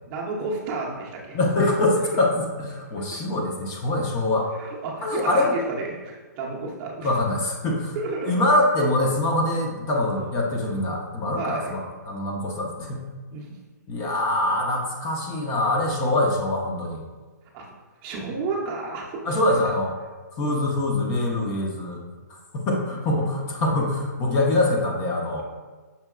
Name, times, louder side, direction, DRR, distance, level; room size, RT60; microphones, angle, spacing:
voice 1, 0.0-1.4 4.6-7.2 7.9-8.4 10.1-10.3 11.4-11.7 13.3-13.5 17.5-17.6 18.0-19.4 20.4-20.6, right 3 dB, 30° right, -2 dB, 0.6 m, -31 dB
voice 2, 1.3-4.5 5.0-5.5 7.0-8.0 8.3-13.0 13.9-17.0 19.2-19.9 20.4-22.0 22.5-25.4, left 1 dB, 25° left, -1 dB, 0.6 m, -24 dB
5.5 x 2.8 x 2.3 m, 1.3 s
hypercardioid pair, 145°, 10 cm